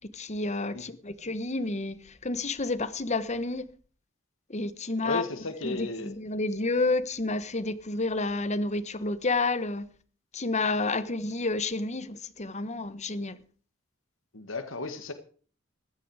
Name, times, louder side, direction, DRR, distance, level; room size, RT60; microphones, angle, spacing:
voice 1, 0.1-2.0 2.2-3.6 4.5-5.2 5.6-9.9 10.3-13.4, left 3 dB, 35° left, 1.2 m, -30 dB
voice 2, 5.0-6.1 14.3-15.1, left 2 dB, 80° left, 1.8 m, -34 dB
15.5 x 12.5 x 4.9 m
head